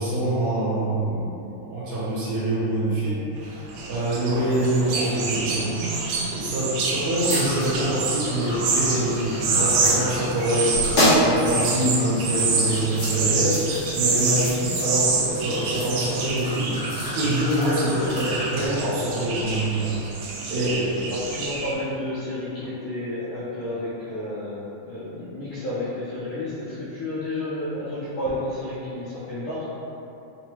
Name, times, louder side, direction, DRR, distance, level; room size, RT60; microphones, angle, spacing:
voice 1, 0.0-3.6 3.9-5.8 6.3-10.8 11.2-13.6 13.9-19.9 20.5-20.8, right 1 dB, 70° right, -8 dB, 1.9 m, -25 dB
sound 1, 3.4-21.7, right 4 dB, 85° right, 2.1 m, -27 dB
sound 2, 7.2-18.7, left 1 dB, 55° left, 1.4 m, -29 dB
voice 2, 20.6-29.7, left 1 dB, 80° left, -10 dB, 1.5 m, -31 dB
5.7 x 2.1 x 2.9 m, 2.9 s
omnidirectional pair, 3.5 m